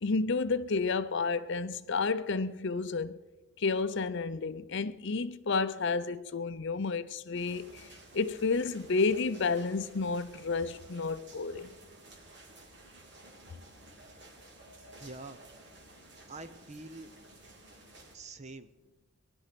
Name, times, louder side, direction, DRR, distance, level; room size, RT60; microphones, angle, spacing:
voice 1, 0.0-3.2 3.6-7.9 8.1-11.7 14.7-15.0, left 4 dB, 55° left, 0.6 m, -31 dB
sound 1, 7.3-18.1, right 1 dB, 55° right, 3.4 m, -54 dB
voice 2, 15.0-15.4 16.3-17.1 18.1-18.7, right 2 dB, 30° right, 0.8 m, -45 dB
19.0 x 12.0 x 6.0 m
head